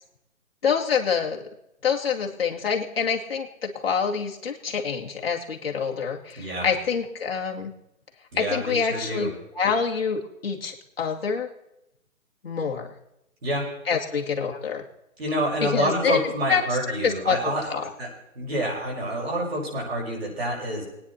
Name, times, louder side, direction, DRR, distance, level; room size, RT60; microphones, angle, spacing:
voice 1, 0.6-1.4 1.8-7.7 8.3-11.5 12.4-12.9 13.9-14.8 15.6-16.2 16.5-16.8 17.0-17.8, left 6 dB, 45° left, 0 dB, 2.3 m, -26 dB
voice 2, 6.4-6.7 8.3-9.3 13.4-13.6 15.2-17.6 18.0-18.1 18.4-20.8, right 1 dB, 50° right, -3 dB, 5.7 m, -28 dB
20.5 x 9.9 x 4.2 m, 0.86 s
hypercardioid pair, 175°, 41 cm